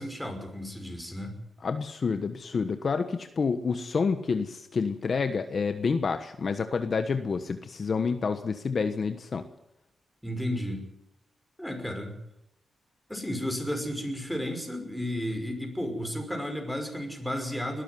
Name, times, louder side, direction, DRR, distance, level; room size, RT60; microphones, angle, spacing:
voice 1, 0.0-1.3 10.2-10.8 11.6-12.1 13.1-17.8, equal, ahead, 4 dB, 5.6 m, -33 dB
voice 2, 1.6-9.5, left 5 dB, 50° left, 8 dB, 1.3 m, -28 dB
21.5 x 13.0 x 9.7 m, 0.80 s
cardioid pair, 95°, 0 cm